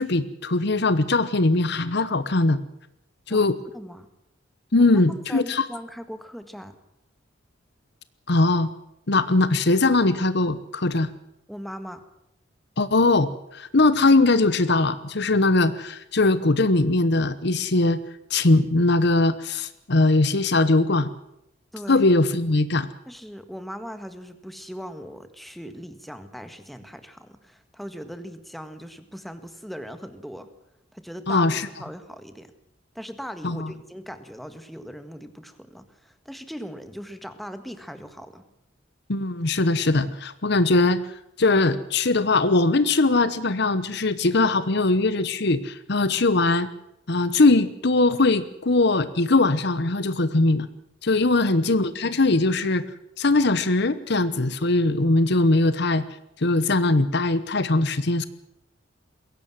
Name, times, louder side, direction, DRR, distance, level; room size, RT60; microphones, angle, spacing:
voice 1, 0.0-2.6 3.3-3.6 4.7-5.6 8.3-8.7 9.1-11.1 12.8-18.0 18.3-21.1 21.9-22.9 31.3-31.7 33.4-33.7 39.1-41.0 41.4-46.7 47.1-50.7 51.0-52.8 53.2-56.0 56.4-58.3, left 2 dB, 60° left, 14 dB, 1.0 m, -21 dB
voice 2, 3.7-4.1 4.7-4.9 5.3-6.7 11.5-12.0 21.7-22.0 23.1-30.5 30.9-32.5 32.9-38.4 51.3-51.5, equal, ahead, 9 dB, 1.7 m, -39 dB
22.0 x 17.0 x 7.7 m, 0.83 s
head